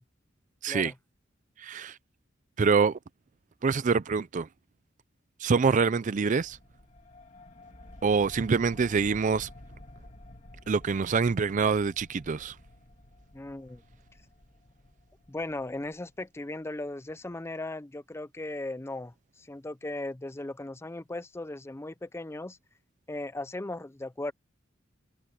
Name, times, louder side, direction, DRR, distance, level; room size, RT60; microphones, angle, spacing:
voice 1, 1.6-2.0 2.6-3.0 3.6-4.5 5.4-6.6 8.0-9.5 10.7-12.6, right 5 dB, 40° right, 0.4 m, -25 dB
sound 1, 6.4-16.6, left 1 dB, 35° left, 2.5 m, -51 dB
voice 2, 13.3-13.8 15.3-22.6 23.1-24.3, left 2 dB, 15° left, 0.5 m, -37 dB
head